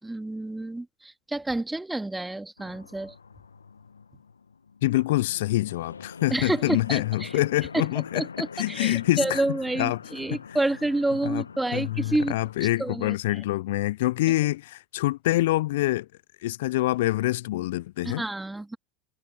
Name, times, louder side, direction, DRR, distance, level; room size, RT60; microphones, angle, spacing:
voice 1, 0.0-3.1 6.3-7.4 7.7-7.9 8.1-13.2 18.0-18.8, right 2 dB, 10° right, 2.5 m, -29 dB
sound 1, 2.6-12.6, left 5 dB, 85° left, 1.3 m, -44 dB
voice 2, 4.8-8.3 8.5-9.4 9.8-10.0 11.2-11.4 11.7-16.1 16.4-18.2, left 17 dB, 65° left, 0.3 m, -25 dB
figure-of-eight pair, 75°, 0 cm